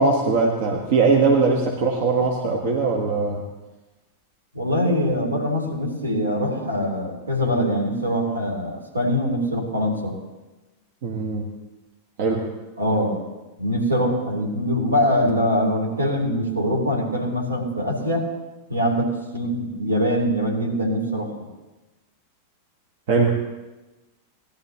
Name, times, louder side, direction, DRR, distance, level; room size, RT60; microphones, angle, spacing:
voice 1, 0.0-3.4 11.0-11.5 12.2-12.5 23.1-23.4, right 4 dB, 55° right, 1 dB, 1.4 m, -20 dB
voice 2, 4.5-10.1 12.8-13.2 13.6-18.2 18.7-21.3, equal, 80° right, 0 dB, 3.3 m, -23 dB
19.0 x 11.5 x 3.0 m, 1.1 s
figure-of-eight pair, 90°, 0 cm